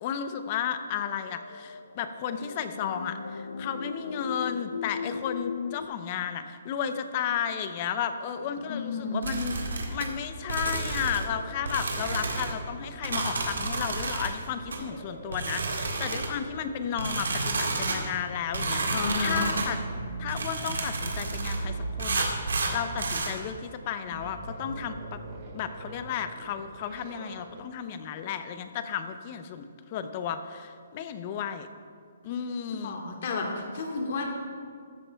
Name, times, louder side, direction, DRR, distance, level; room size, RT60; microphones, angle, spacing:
voice 1, 0.0-9.6 9.9-19.8 20.2-25.2 25.5-31.7 32.2-33.1, left 8 dB, 35° left, 10 dB, 0.6 m, -33 dB
sound 1, 1.0-5.9, left 5 dB, 85° left, 0.5 m, -37 dB
sound 2, 8.3-27.6, right 3 dB, 45° right, 1.1 m, -42 dB
voice 2, 8.7-9.3 18.9-19.5 32.8-34.3, left 4 dB, 50° left, 1 dB, 1.6 m, -31 dB
sound 3, 9.2-10.1 10.5-11.3 11.6-12.5 13.0-14.3 14.7-14.8 15.3-16.4 17.0-18.0 18.5-19.7 20.3-21.6 22.0-23.3, right 3 dB, 85° right, 1.7 m, -30 dB
14.0 x 11.0 x 2.3 m, 2.1 s
hypercardioid pair, 155°, 0 cm